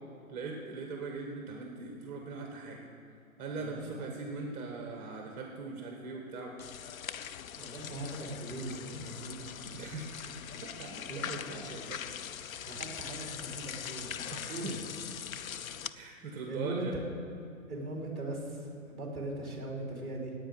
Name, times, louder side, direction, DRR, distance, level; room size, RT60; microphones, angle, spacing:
voice 1, 0.3-2.8 3.4-6.6 9.7-10.3 10.6-12.0 13.0-13.3 14.3-14.8 15.9-16.9, right 3 dB, 20° right, 1 dB, 1.4 m, -41 dB
voice 2, 3.5-4.1 7.5-9.5 11.1-11.6 12.6-14.7 16.5-17.0 17.7-20.4, right 2 dB, ahead, -2 dB, 2.9 m, -40 dB
sound 1, 6.6-15.9, left 9 dB, 70° left, 0.7 m, -42 dB
10.5 x 8.9 x 9.5 m, 2.7 s
hypercardioid pair, 150°, 42 cm